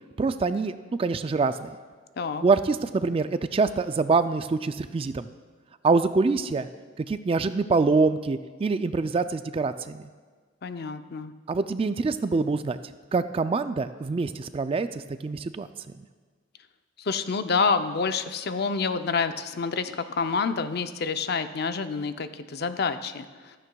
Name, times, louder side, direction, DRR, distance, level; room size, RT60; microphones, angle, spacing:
voice 1, 0.2-1.8 2.4-5.3 5.8-6.7 7.0-10.1 11.5-12.8 13.1-15.7, right 4 dB, 30° right, 11 dB, 0.3 m, -25 dB
voice 2, 10.6-11.3 17.0-23.6, left 5 dB, 55° left, 9 dB, 0.5 m, -28 dB
15.0 x 13.5 x 2.3 m, 1.5 s
head